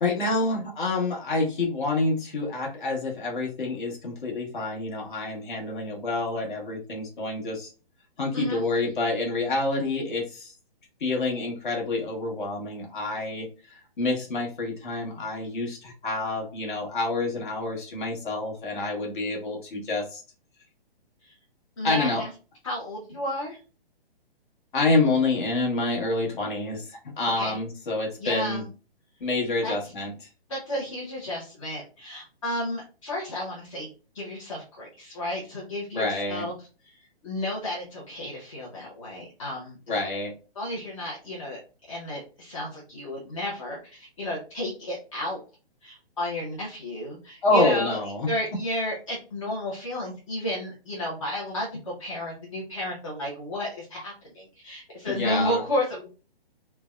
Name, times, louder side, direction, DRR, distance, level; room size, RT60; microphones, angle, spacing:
voice 1, 0.0-7.7 8.2-10.5 11.0-20.2 21.8-22.2 24.7-28.6 29.2-30.1 35.9-36.5 39.9-40.3 47.4-48.3 55.0-55.6, left 2 dB, 55° left, 0 dB, 1.1 m, -27 dB
voice 2, 21.8-22.3 22.6-23.6 27.3-27.6 28.2-28.7 29.6-29.7 30.5-33.9 34.1-36.5 36.8-39.8 40.6-41.6 41.9-45.4 45.8-48.0 48.3-56.1, left 1 dB, 30° left, -4 dB, 0.6 m, -32 dB
3.3 x 2.1 x 2.2 m, 0.35 s
hypercardioid pair, 165°, 30 cm